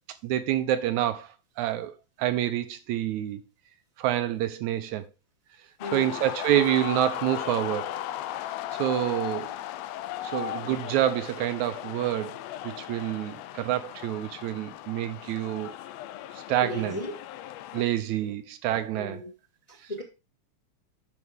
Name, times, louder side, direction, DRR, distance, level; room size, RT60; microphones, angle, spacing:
voice 1, 0.2-1.3 1.6-3.4 4.0-5.1 5.9-8.0 8.8-9.5 10.2-12.4 12.6-15.7 16.5-17.0 17.7-19.2, right 12 dB, 80° right, 2.1 m, -27 dB
sound 1, 5.8-17.8, left 13 dB, 85° left, 1.5 m, -37 dB
voice 2, 5.8-6.3 16.6-17.1 18.2-18.3 18.9-19.3 19.7-20.0, left 2 dB, 20° left, 1.2 m, -36 dB
11.0 x 5.4 x 3.5 m
omnidirectional pair, 3.5 m